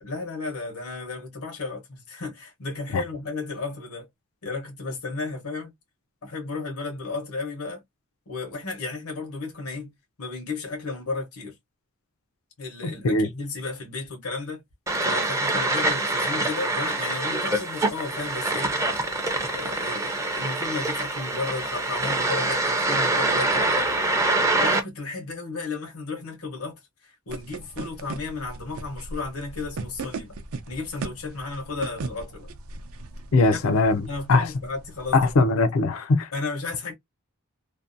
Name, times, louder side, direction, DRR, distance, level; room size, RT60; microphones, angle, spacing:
voice 1, 0.0-4.1 4.4-5.7 6.2-7.8 8.3-11.5 12.6-14.6 15.1-18.8 19.5-24.1 24.6-30.4 30.7-32.5 33.5-33.6 34.1-35.3 36.3-36.9, left 3 dB, 85° left, 0.9 m, -33 dB
voice 2, 12.8-13.3 33.3-34.0 34.3-34.5 35.1-36.3, left 3 dB, 70° left, 0.4 m, -20 dB
sound 1, 14.9-24.8, right 2 dB, 15° right, 0.4 m, -25 dB
sound 2, 27.3-35.3, right 3 dB, 75° right, 0.5 m, -38 dB
2.6 x 2.1 x 2.5 m
head